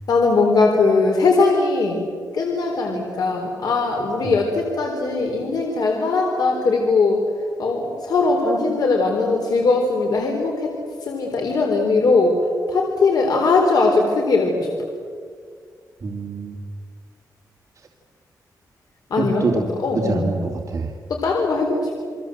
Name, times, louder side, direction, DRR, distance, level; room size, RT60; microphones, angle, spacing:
voice 1, 0.1-2.0 2.3-7.2 7.6-10.7 11.1-12.3 12.7-14.7 19.1-20.3 21.1-22.0, left 3 dB, 70° left, 1 dB, 4.0 m, -20 dB
voice 2, 16.0-16.6 19.2-19.6 19.9-20.9, right 4 dB, 50° right, 0 dB, 2.4 m, -25 dB
29.5 x 23.5 x 7.8 m, 2.1 s
wide cardioid pair, 115°, 7 cm